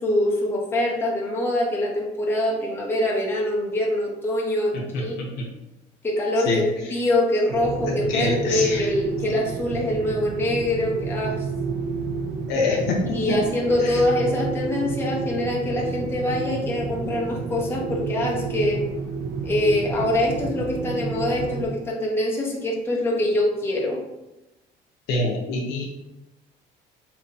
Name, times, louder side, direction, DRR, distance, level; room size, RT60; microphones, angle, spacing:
voice 1, 0.0-5.2 6.0-6.6 6.9-11.5 13.1-18.8 19.4-24.0, left 1 dB, 15° left, -3 dB, 0.6 m, -24 dB
voice 2, 4.7-5.5 6.5-6.6 7.9-8.9 12.5-13.4 13.8-14.0 25.1-25.8, left 3 dB, 85° left, -1 dB, 0.5 m, -26 dB
sound 1, 7.5-21.7, right 5 dB, 85° right, 0.5 m, -30 dB
2.7 x 2.1 x 2.5 m, 0.96 s
cardioid pair, 110°, 17 cm